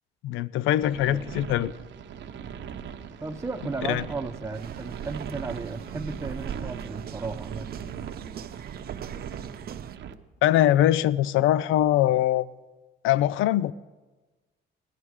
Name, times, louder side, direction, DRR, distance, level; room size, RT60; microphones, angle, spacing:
voice 1, 0.2-1.7 3.9-4.0 10.4-12.5 13.0-13.7, left 13 dB, 90° left, 18 dB, 0.4 m, -22 dB
sound 1, 0.8-10.1, right 8 dB, 65° right, 0.9 m, -39 dB
voice 2, 3.2-7.7, right 3 dB, 15° right, 5 dB, 0.7 m, -35 dB
sound 2, 4.5-10.0, right 9 dB, 50° right, 0.5 m, -40 dB
17.0 x 11.5 x 4.8 m, 1.2 s
cardioid pair, 90°, 20 cm